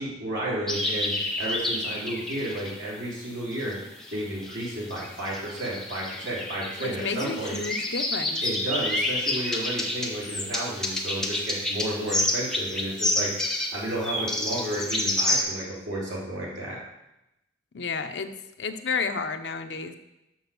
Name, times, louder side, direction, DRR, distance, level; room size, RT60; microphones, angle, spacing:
voice 1, 0.0-3.8 4.1-7.6 8.4-13.3 13.7-16.8, right 1 dB, 75° right, -6 dB, 3.3 m, -32 dB
sound 1, 0.7-2.9 3.5-15.4, left 1 dB, 5° left, 0.9 m, -29 dB
voice 2, 6.8-8.4 17.7-18.3 18.6-19.9, left 5 dB, 70° left, 8 dB, 0.7 m, -31 dB
6.3 x 6.1 x 6.9 m, 0.92 s
head